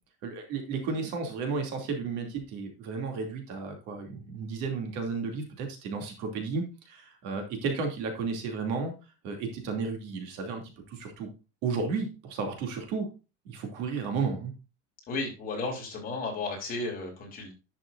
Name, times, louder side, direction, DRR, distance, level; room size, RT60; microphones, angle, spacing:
voice 1, 0.2-8.9 9.2-11.3 11.6-13.1 13.5-14.5, right 4 dB, 55° right, 3 dB, 2.7 m, -33 dB
voice 2, 15.1-17.5, left 3 dB, 25° left, -1 dB, 3.4 m, -34 dB
11.0 x 6.4 x 2.6 m, 0.30 s
cardioid pair, 170°, 31 cm